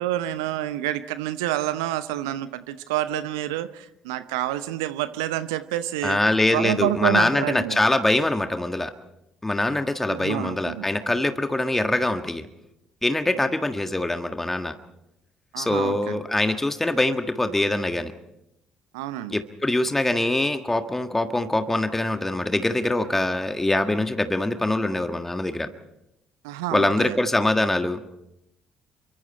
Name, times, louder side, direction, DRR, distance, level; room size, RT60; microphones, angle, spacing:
voice 1, 0.0-6.2 6.5-7.8 10.1-10.9 15.5-16.2 18.9-19.4 26.4-27.2, right 14 dB, 70° right, 14 dB, 0.7 m, -28 dB
voice 2, 6.0-8.9 9.4-12.5 13.0-14.7 15.6-18.1 19.3-25.7 26.7-28.0, left 2 dB, 15° left, 8 dB, 1.5 m, -23 dB
28.0 x 23.5 x 4.4 m, 0.86 s
figure-of-eight pair, 45°, 2 cm